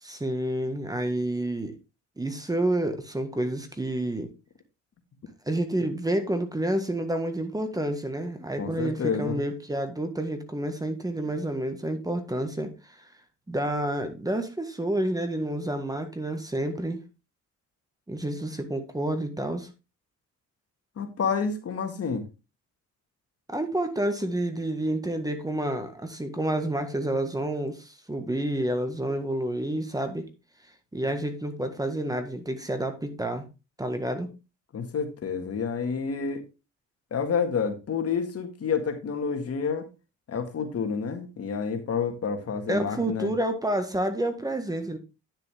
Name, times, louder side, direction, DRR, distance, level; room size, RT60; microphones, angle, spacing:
voice 1, 0.0-1.8 2.2-4.3 5.4-13.1 13.5-17.0 18.1-19.7 23.5-30.3 30.9-33.4 33.8-34.3 42.7-45.0, right 1 dB, 10° right, 7 dB, 1.6 m, -29 dB
voice 2, 8.6-9.4 21.0-22.2 34.7-36.4 37.1-39.9 40.3-43.3, left 6 dB, 50° left, 7 dB, 1.9 m, -29 dB
10.0 x 6.6 x 3.6 m, 0.28 s
cardioid pair, 90°, 30 cm